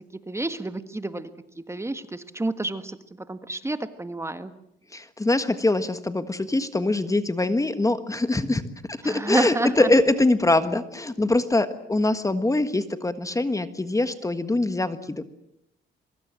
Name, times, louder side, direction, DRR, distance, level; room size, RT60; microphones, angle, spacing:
voice 1, 0.3-3.0 3.3-4.5 9.0-9.9, right 2 dB, 15° right, 10 dB, 1.6 m, -29 dB
voice 2, 4.9-15.2, left 2 dB, 15° left, 11 dB, 1.5 m, -23 dB
23.5 x 23.5 x 7.6 m, 0.79 s
cardioid pair, 90°, 20 cm